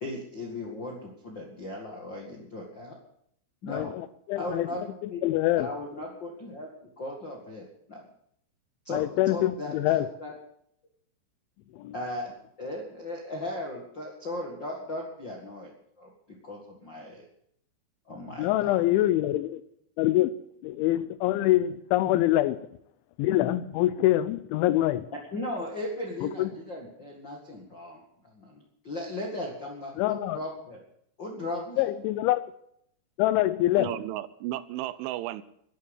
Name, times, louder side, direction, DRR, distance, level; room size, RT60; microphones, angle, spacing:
voice 1, 0.0-3.0 3.6-3.9 4.3-5.2 5.6-8.1 8.8-10.3 11.9-12.3 12.6-15.7 16.0-17.2 18.1-18.8 22.0-22.2 25.3-30.8 31.2-31.9, left 1 dB, 50° left, 1.3 m, -37 dB
voice 2, 3.7-4.7 5.2-5.7 8.9-10.1 11.7-11.9 18.4-19.6 20.0-20.3 20.6-22.6 23.2-25.1 26.2-26.5 30.0-30.4 31.8-32.4 33.2-33.9, left 15 dB, 80° left, 3.0 m, -25 dB
voice 3, 33.8-35.4, right 15 dB, 85° right, 3.2 m, -33 dB
11.0 x 10.5 x 9.7 m
omnidirectional pair, 5.5 m